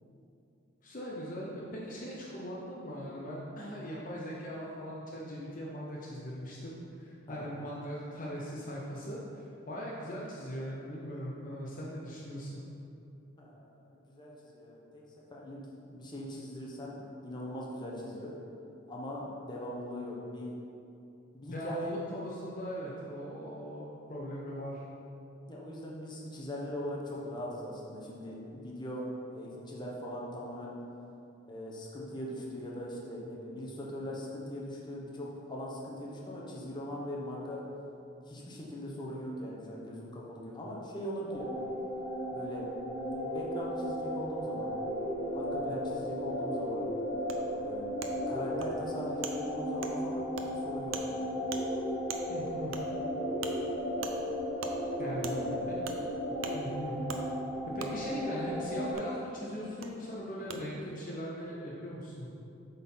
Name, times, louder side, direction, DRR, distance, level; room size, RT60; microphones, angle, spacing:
voice 1, 0.8-12.6 21.5-24.8 52.3-52.7 55.0-55.4 55.7-55.8 56.5-57.2 57.7-62.3, equal, 40° left, -5 dB, 0.9 m, -40 dB
voice 2, 13.4-15.0 15.3-18.3 18.9-20.6 21.3-21.9 25.5-30.8 31.5-37.6 38.3-41.5 42.3-42.7 43.1-44.7 45.3-46.9 47.6-47.9 48.3-50.3 50.6-51.2 55.0-55.7, equal, 20° left, -4 dB, 1.1 m, -40 dB
sound 1, 41.3-58.9, equal, 5° left, 1.7 m, -35 dB
Wood, 47.3-47.4 48.0-48.1 48.6-48.7 49.2-49.3 49.8-49.9 50.4-50.5 50.9-51.1 51.5-51.6 52.1-52.2 52.7-52.8 53.4-53.5 54.0-54.2 54.6-54.7 55.2-55.4 55.9-56.0 56.4-56.5 57.1-57.2 57.8-57.9 59.0-59.1 59.8-59.9 60.5-60.6, right 6 dB, 90° right, 0.6 m, -40 dB
7.9 x 4.1 x 5.6 m, 2.7 s
head